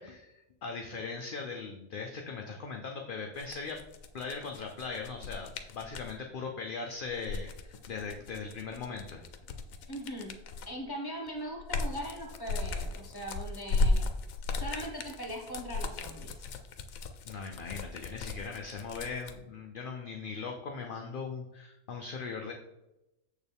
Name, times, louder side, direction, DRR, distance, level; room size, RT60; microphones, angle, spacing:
voice 1, 0.0-3.8 4.1-9.2 17.2-22.5, left 4 dB, 50° left, 2 dB, 0.7 m, -39 dB
sound 1, 3.3-6.1 7.1-10.8 11.3-19.3, left 3 dB, 85° left, 1.1 m, -35 dB
voice 2, 9.9-10.3 10.7-14.1 14.6-16.5, equal, 15° left, -1 dB, 1.4 m, -40 dB
7.0 x 6.6 x 3.5 m, 0.94 s
omnidirectional pair, 1.4 m